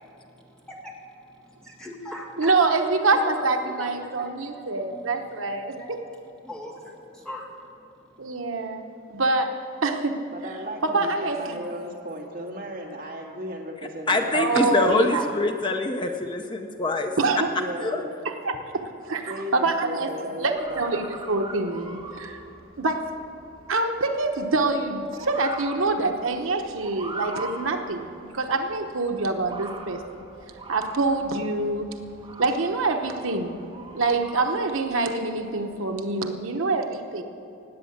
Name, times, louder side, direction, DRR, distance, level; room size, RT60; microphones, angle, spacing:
voice 1, 0.0-1.3 1.8-2.6 3.1-8.5, left 1 dB, 5° left, -3 dB, 1.9 m, -42 dB
voice 2, 2.4-5.8 8.2-10.2 10.8-11.6 14.3-15.3 17.2-17.5 18.2-20.1 20.4-22.4 22.8-23.1 23.7-30.0 30.7-31.9 32.4-33.6 33.9-37.2, right 3 dB, 80° right, 5 dB, 1.0 m, -25 dB
voice 3, 10.3-15.1 17.4-18.2 19.3-20.9, equal, 45° right, 0 dB, 1.9 m, -35 dB
voice 4, 14.1-17.1 17.8-18.0, left 3 dB, 20° left, 5 dB, 0.6 m, -24 dB
Motor vehicle (road) / Siren, 20.6-36.1, right 2 dB, 25° right, 1.5 m, -42 dB
18.5 x 8.4 x 7.2 m, 2.8 s
head